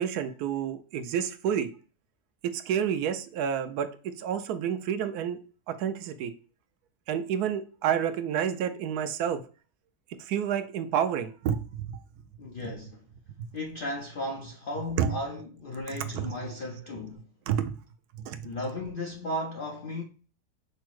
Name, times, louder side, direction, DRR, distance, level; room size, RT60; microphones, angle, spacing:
voice 1, 0.0-1.7 2.4-5.4 5.7-6.3 7.1-9.4 10.2-11.9 13.4-13.5 15.0-15.1 16.1-16.3 17.5-17.8 18.3-18.5, right 8 dB, 85° right, 1.1 m, -29 dB
voice 2, 12.4-13.0 13.5-17.3 18.4-20.0, left 1 dB, 60° left, 0.5 m, -35 dB
5.5 x 2.0 x 4.6 m
omnidirectional pair, 1.6 m